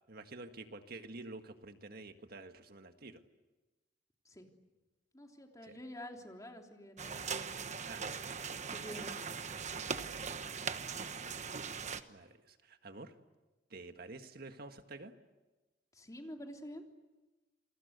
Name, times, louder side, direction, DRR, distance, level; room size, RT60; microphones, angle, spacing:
voice 1, 0.1-3.2 5.7-5.8 7.8-8.0 10.4-10.7 12.1-13.1 13.7-15.1, right 2 dB, 60° right, 7 dB, 1.8 m, -49 dB
voice 2, 5.1-7.9 8.7-9.4 15.9-16.8, equal, 20° left, 3 dB, 3.4 m, -49 dB
sound 1, 7.0-12.0, right 5 dB, 40° right, 1.2 m, -40 dB
28.5 x 23.0 x 8.2 m, 1.1 s
head